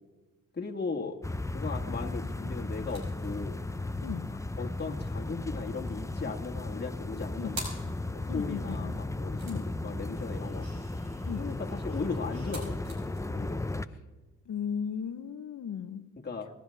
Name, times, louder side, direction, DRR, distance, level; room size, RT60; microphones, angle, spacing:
voice 1, 0.5-1.2 1.5-3.6 4.6-7.6 8.1-10.7 11.4-12.9 13.3-13.6 16.2-16.5, left 4 dB, 25° left, 0 dB, 1.7 m, -37 dB
sound 1, 1.2-13.9, left 2 dB, 10° left, 0.7 m, -35 dB
sound 2, 2.7-8.2 9.4-13.2, right 1 dB, 75° right, 5.3 m, -48 dB
voice 2, 8.3-9.0 9.4-9.6 11.3-11.5 14.5-16.0, left 7 dB, 55° left, 12 dB, 1.1 m, -36 dB
24.0 x 11.0 x 3.5 m, 1.2 s
supercardioid pair, 50°, 36 cm